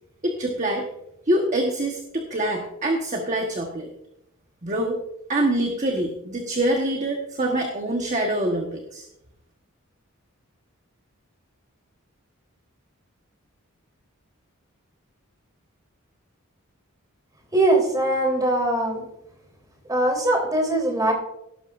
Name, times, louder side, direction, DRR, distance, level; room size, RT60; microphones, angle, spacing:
voice 1, 0.2-0.9 1.3-3.9 4.6-5.0 5.3-9.1, right 1 dB, 35° right, 2 dB, 1.2 m, -25 dB
voice 2, 17.5-19.1 19.9-21.1, right 1 dB, 15° right, 1 dB, 3.5 m, -21 dB
17.5 x 11.5 x 2.5 m, 0.83 s
head